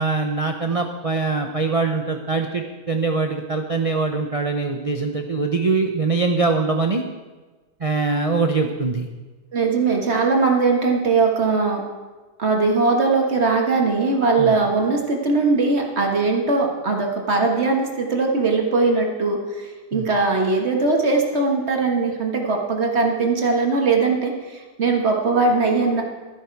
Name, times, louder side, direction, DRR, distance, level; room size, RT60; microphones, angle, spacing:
voice 1, 0.0-7.0 7.8-9.1 14.4-14.5 19.9-20.1, right 4 dB, 60° right, 4 dB, 0.3 m, -23 dB
voice 2, 9.5-11.8 12.4-26.0, right 3 dB, 40° right, 1 dB, 1.7 m, -20 dB
13.0 x 11.0 x 4.7 m, 1.3 s
omnidirectional pair, 1.7 m